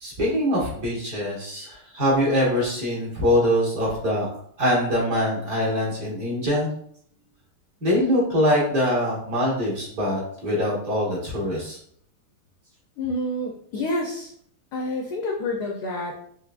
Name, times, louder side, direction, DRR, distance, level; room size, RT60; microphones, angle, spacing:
voice 1, 0.0-4.3 4.6-6.7 7.8-11.8, equal, 50° right, -4 dB, 1.4 m, -23 dB
voice 2, 13.0-14.3 14.7-16.3, left 1 dB, 80° left, 1 dB, 0.9 m, -28 dB
4.6 x 3.1 x 2.4 m, 0.64 s
omnidirectional pair, 2.4 m